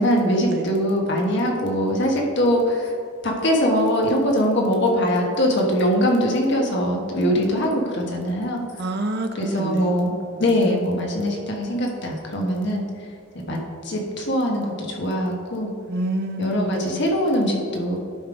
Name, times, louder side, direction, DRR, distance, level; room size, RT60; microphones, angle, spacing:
voice 1, 0.0-2.9 3.2-8.6 9.3-12.8 13.4-13.6 13.8-15.7 16.4-18.0, equal, 60° left, 0 dB, 1.3 m, -22 dB
voice 2, 8.8-9.3 9.6-9.9 10.2-10.4 15.9-17.0, right 1 dB, 55° right, 5 dB, 0.7 m, -28 dB
11.5 x 3.9 x 5.0 m, 2.2 s
head